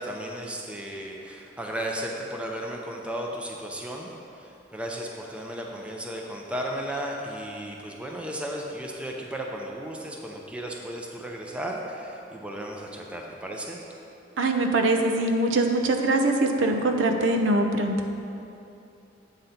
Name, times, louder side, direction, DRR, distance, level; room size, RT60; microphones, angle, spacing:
voice 1, 0.0-4.1 4.4-13.8, right 1 dB, 5° right, -1 dB, 0.5 m, -35 dB
voice 2, 14.4-17.9, right 2 dB, 85° right, 4 dB, 0.6 m, -23 dB
7.9 x 3.9 x 5.7 m, 2.8 s
head